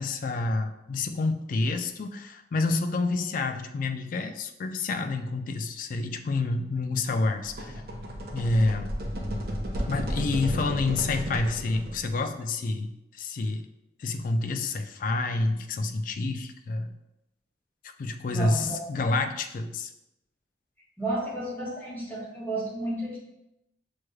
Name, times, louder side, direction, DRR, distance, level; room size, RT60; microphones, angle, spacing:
voice 1, 0.0-7.8 8.3-8.9 9.8-13.7 14.0-16.9 18.0-19.9, left 3 dB, 50° left, 7 dB, 0.3 m, -28 dB
sound 1, 7.4-12.3, equal, 55° right, 0.7 m, -33 dB
voice 2, 18.3-19.0 21.0-23.2, right 1 dB, 10° left, -6 dB, 1.2 m, -32 dB
6.2 x 3.1 x 2.3 m, 0.91 s
head